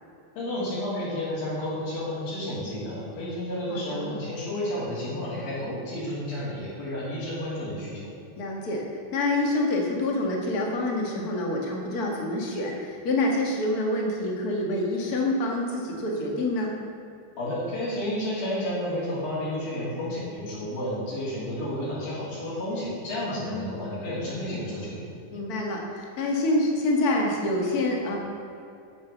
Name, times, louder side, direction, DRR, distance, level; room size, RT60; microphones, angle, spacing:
voice 1, 0.4-8.1 17.4-25.1, left 1 dB, 75° left, -9 dB, 4.6 m, -31 dB
voice 2, 3.7-4.1 8.4-8.9 9.1-16.7 23.3-23.7 25.3-28.2, left 2 dB, 50° left, 0 dB, 1.1 m, -27 dB
9.1 x 7.5 x 7.0 m, 2.7 s
omnidirectional pair, 4.2 m